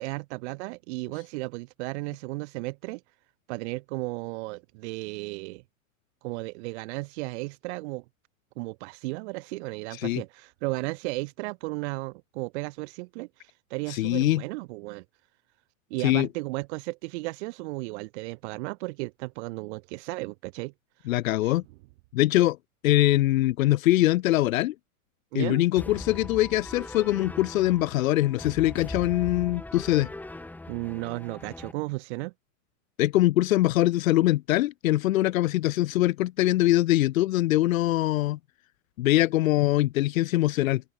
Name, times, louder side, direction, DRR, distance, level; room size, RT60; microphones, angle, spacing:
voice 1, 0.0-3.0 3.5-5.6 6.2-8.0 8.6-15.0 15.9-20.7 21.4-21.5 25.3-25.6 30.7-32.3, right 24 dB, 50° right, 1.9 m, -34 dB
voice 2, 9.9-10.2 13.9-14.4 16.0-16.3 21.1-21.6 22.1-22.6 22.8-24.7 25.3-30.1 33.0-38.4 39.0-40.8, left 16 dB, 70° left, 2.0 m, -23 dB
sound 1, 25.8-31.7, left 2 dB, 5° left, 2.3 m, -40 dB
open air
supercardioid pair, 150°, 42 cm